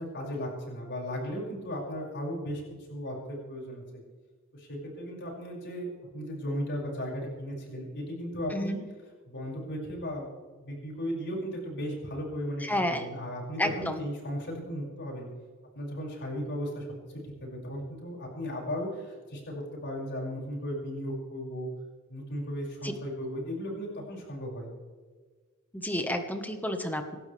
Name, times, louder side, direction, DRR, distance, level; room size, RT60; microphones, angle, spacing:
voice 1, 0.0-2.6 2.9-3.8 4.5-8.8 9.3-10.3 10.6-15.3 15.7-16.9 17.2-21.7 22.1-24.7, equal, 55° left, -2 dB, 6.3 m, -36 dB
voice 2, 12.6-13.1 13.6-14.0 22.8-22.9 25.7-27.2, left 1 dB, 10° left, 6 dB, 1.4 m, -30 dB
27.0 x 12.0 x 3.4 m, 1.4 s
head